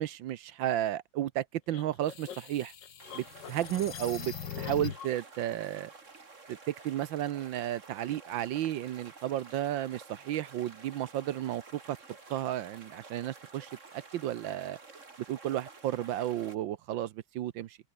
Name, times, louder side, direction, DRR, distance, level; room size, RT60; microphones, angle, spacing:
voice 1, 0.0-2.7 3.1-5.9 6.5-12.0 12.3-13.7 14.1-14.8 15.3-17.8, right 12 dB, 75° right, 1.5 m, -33 dB
sound 1, 1.7-5.2, left 8 dB, 65° left, 2.1 m, -41 dB
sound 2, 3.0-16.6, right 4 dB, 40° right, 2.9 m, -51 dB
omnidirectional pair, 2.1 m